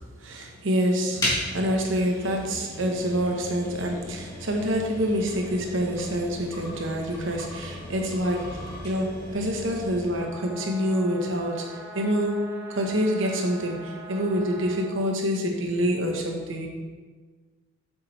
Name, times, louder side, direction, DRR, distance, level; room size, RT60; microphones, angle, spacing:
voice 1, 0.2-11.6 11.9-12.4 12.7-16.7, equal, 75° right, 1 dB, 1.1 m, -26 dB
sound 1, 1.2-10.3, left 1 dB, 20° left, 2.5 m, -36 dB
sound 2, 10.2-15.0, right 2 dB, 10° right, 0.6 m, -42 dB
8.3 x 7.3 x 3.3 m, 1.4 s
head